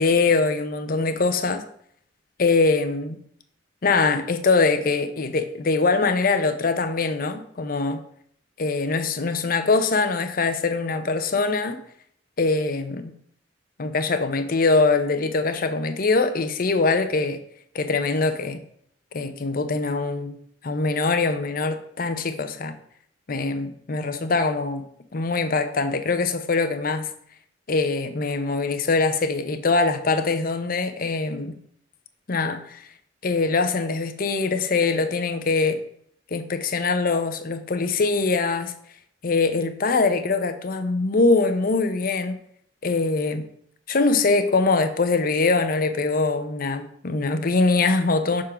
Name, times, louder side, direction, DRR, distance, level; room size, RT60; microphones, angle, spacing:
voice 1, 0.0-1.6 2.4-3.2 3.8-8.0 8.6-11.8 12.4-13.1 13.8-17.4 17.7-18.6 19.1-20.3 20.6-22.8 23.3-24.8 25.1-27.1 27.7-31.6 32.3-32.8 33.2-35.8 36.3-38.7 39.2-42.4 42.8-43.5 43.9-48.4, left 3 dB, 50° left, 9 dB, 0.6 m, -23 dB
6.2 x 3.7 x 5.7 m, 0.66 s
head